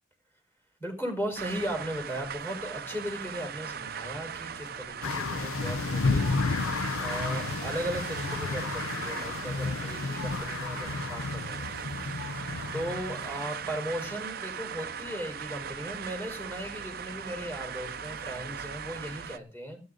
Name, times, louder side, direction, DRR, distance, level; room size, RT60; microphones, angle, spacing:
voice 1, 0.8-12.4 12.7-19.8, equal, 10° left, 2 dB, 4.3 m, -37 dB
sound 1, 1.4-19.4, right 7 dB, 45° right, 0.6 m, -38 dB
sound 2, 5.0-14.1, left 4 dB, 85° left, 0.6 m, -32 dB
18.0 x 9.5 x 3.8 m, 0.36 s
head